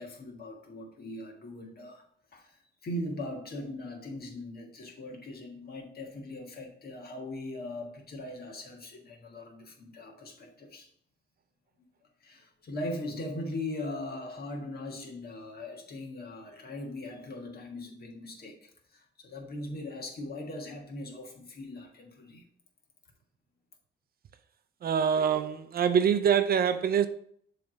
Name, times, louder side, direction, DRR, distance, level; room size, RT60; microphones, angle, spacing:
voice 1, 0.0-2.1 2.3-10.9 12.2-22.4, left 1 dB, 50° left, 1.6 m, -40 dB
voice 2, 24.8-27.1, right 8 dB, 50° right, 0.5 m, -25 dB
7.0 x 3.4 x 5.1 m
cardioid pair, 90°, 20 cm